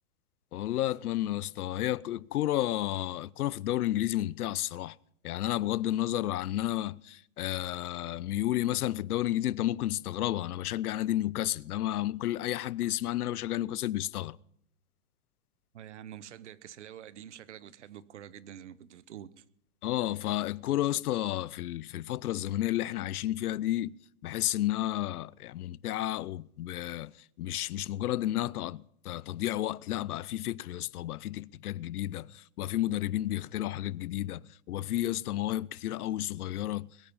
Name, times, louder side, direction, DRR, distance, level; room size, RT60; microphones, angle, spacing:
voice 1, 0.5-5.0 5.2-14.4 19.8-24.0 24.2-27.1 27.4-36.9, left 14 dB, 80° left, 0.6 m, -31 dB
voice 2, 15.7-19.4, right 10 dB, 55° right, 0.8 m, -47 dB
21.5 x 9.1 x 5.4 m
hypercardioid pair, 175°, 44 cm